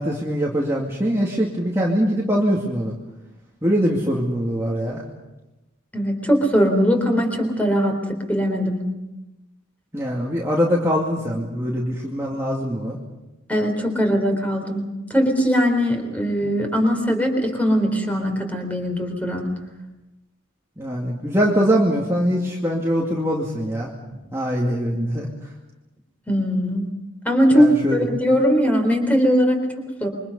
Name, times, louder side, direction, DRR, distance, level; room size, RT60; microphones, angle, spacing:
voice 1, 0.0-2.9 3.6-5.0 9.9-13.0 20.8-23.9 24.3-25.3 27.5-28.0, equal, 15° right, -3 dB, 2.4 m, -22 dB
voice 2, 5.9-8.8 13.5-19.5 26.3-26.9 27.2-30.1, equal, 5° left, 3 dB, 4.0 m, -20 dB
28.0 x 24.0 x 5.5 m, 1.0 s
head